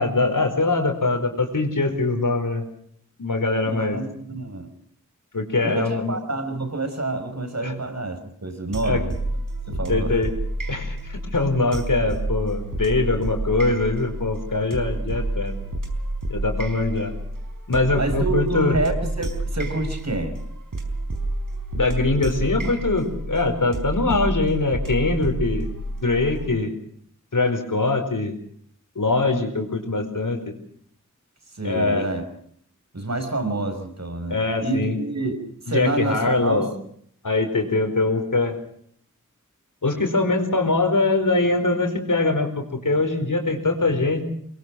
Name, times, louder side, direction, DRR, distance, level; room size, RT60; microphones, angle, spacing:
voice 1, 0.0-2.6 3.2-4.0 5.3-6.2 7.6-7.7 8.8-9.0 9.9-10.3 10.7-15.5 16.3-17.1 17.7-18.8 21.8-25.7 26.0-26.7 27.3-28.3 28.9-30.5 31.6-32.1 34.3-35.0 35.7-36.7 37.2-38.6 39.8-44.2, left 3 dB, 80° left, 5 dB, 4.8 m, -22 dB
voice 2, 3.6-4.7 5.6-9.1 9.7-10.2 17.9-20.4 31.5-32.2 32.9-34.4 34.6-36.7, right 2 dB, 55° right, 7 dB, 5.6 m, -28 dB
sound 1, 8.7-26.5, right 1 dB, 90° right, 4.5 m, -29 dB
23.5 x 22.5 x 6.3 m, 0.64 s
wide cardioid pair, 45°, 31 cm